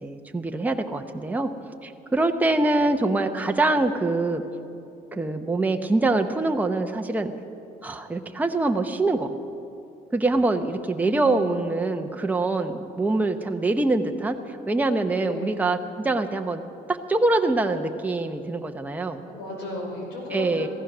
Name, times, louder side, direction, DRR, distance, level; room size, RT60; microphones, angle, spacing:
voice 1, 0.0-1.5 1.8-4.4 5.1-7.3 7.8-9.3 10.1-16.6 16.9-19.2 20.3-20.7, right 2 dB, 10° right, 4 dB, 0.8 m, -24 dB
voice 2, 11.0-11.7 15.2-15.7 19.2-20.7, left 1 dB, 85° left, -1 dB, 5.0 m, -35 dB
15.5 x 14.5 x 6.1 m, 2.8 s
cardioid pair, 110°, 17 cm